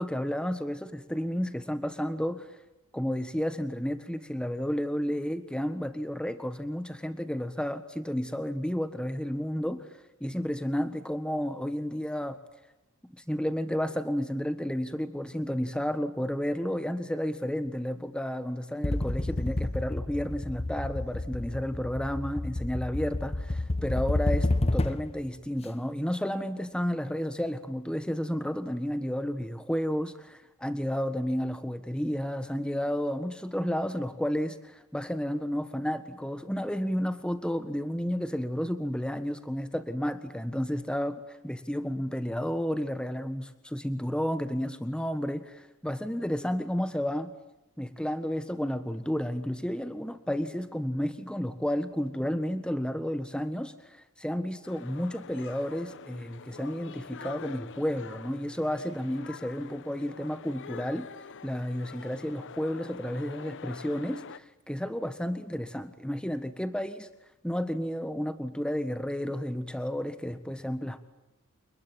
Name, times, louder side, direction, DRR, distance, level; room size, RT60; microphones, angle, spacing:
voice 1, 0.0-2.6 2.9-12.4 13.1-47.3 47.8-61.1 61.4-67.1 67.4-71.0, equal, 5° left, 11 dB, 1.4 m, -32 dB
sound 1, 18.8-25.2, left 2 dB, 30° left, 0.9 m, -30 dB
sound 2, 54.6-64.4, left 5 dB, 60° left, 1.0 m, -45 dB
29.5 x 20.5 x 9.2 m, 0.95 s
head